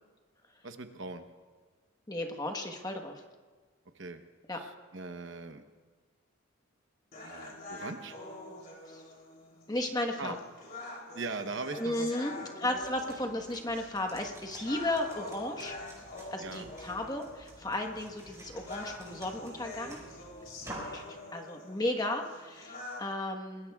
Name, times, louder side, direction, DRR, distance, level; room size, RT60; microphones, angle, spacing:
voice 1, 0.6-1.3 3.9-4.2 4.5-5.6 7.1-8.2 10.2-10.4 11.1-12.8 16.4-16.7, right 3 dB, 60° right, 7 dB, 0.9 m, -41 dB
voice 2, 2.1-3.2 4.5-4.6 8.9-9.0 9.7-10.3 11.7-15.8 16.3-20.0 20.9-23.7, left 1 dB, 20° left, 3 dB, 1.2 m, -34 dB
sound 1, 7.1-23.1, left 2 dB, 45° left, 3.2 m, -46 dB
sound 2, 12.7-21.0, right 1 dB, 15° right, 5.5 m, -50 dB
27.5 x 20.5 x 2.4 m, 1.4 s
head